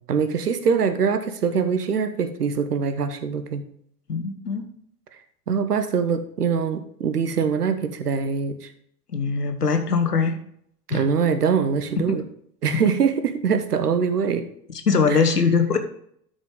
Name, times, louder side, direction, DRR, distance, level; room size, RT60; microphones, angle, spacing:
voice 1, 0.1-3.6 5.5-8.7 10.9-12.2 12.6-14.4 15.1-15.2, right 6 dB, 80° right, 10 dB, 1.0 m, -23 dB
voice 2, 4.1-4.7 9.1-10.4 10.9-11.0 14.9-15.8, left 5 dB, 85° left, 7 dB, 1.2 m, -21 dB
13.0 x 5.1 x 3.7 m, 0.67 s
figure-of-eight pair, 80°, 45 cm